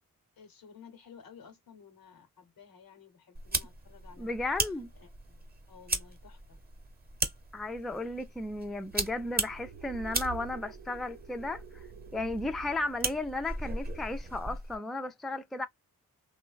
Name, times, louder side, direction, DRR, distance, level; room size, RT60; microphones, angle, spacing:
voice 1, 0.4-4.4 5.0-6.6, left 6 dB, 80° left, 0.8 m, -55 dB
sound 1, 3.3-14.8, right 2 dB, 25° right, 0.8 m, -37 dB
voice 2, 4.2-4.9 7.5-11.8 12.1-15.7, left 2 dB, ahead, 0.3 m, -34 dB
sound 2, 8.8-13.6, right 8 dB, 90° right, 0.7 m, -48 dB
3.1 x 2.1 x 2.2 m
cardioid pair, 60°, 35 cm